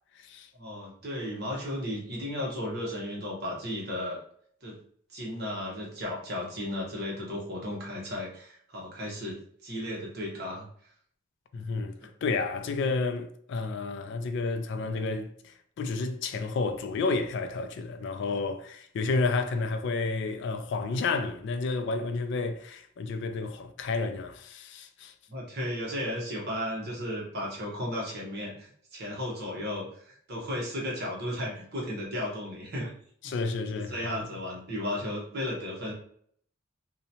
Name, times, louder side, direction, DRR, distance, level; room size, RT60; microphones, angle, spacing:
voice 1, 0.5-4.2 4.6-4.8 5.1-9.4 9.6-10.7 25.3-32.9 33.2-33.3 33.8-35.9, left 1 dB, 50° right, 0.9 m, -34 dB
voice 2, 11.5-15.3 15.8-25.1 33.2-34.3, left 3 dB, 60° left, 0.3 m, -31 dB
2.8 x 2.1 x 2.7 m
head